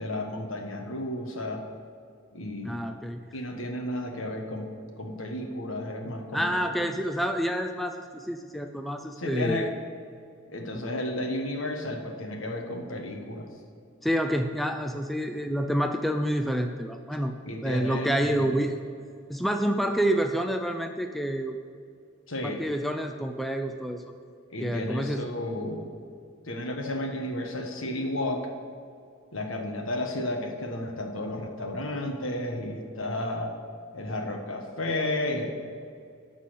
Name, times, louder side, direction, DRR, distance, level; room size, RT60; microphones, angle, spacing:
voice 1, 0.0-1.6 2.3-2.8 3.3-4.7 5.0-6.9 9.2-9.7 10.5-13.5 17.4-18.5 22.3-22.6 24.5-25.9 26.4-28.4 29.3-33.5 33.9-35.6, left 1 dB, 75° left, 2 dB, 1.4 m, -32 dB
voice 2, 2.6-3.2 6.3-9.7 10.7-10.9 14.0-17.3 17.6-18.8 19.3-21.6 22.4-24.0 24.6-25.3, equal, ahead, 5 dB, 0.3 m, -28 dB
11.5 x 4.1 x 8.0 m, 2.3 s
head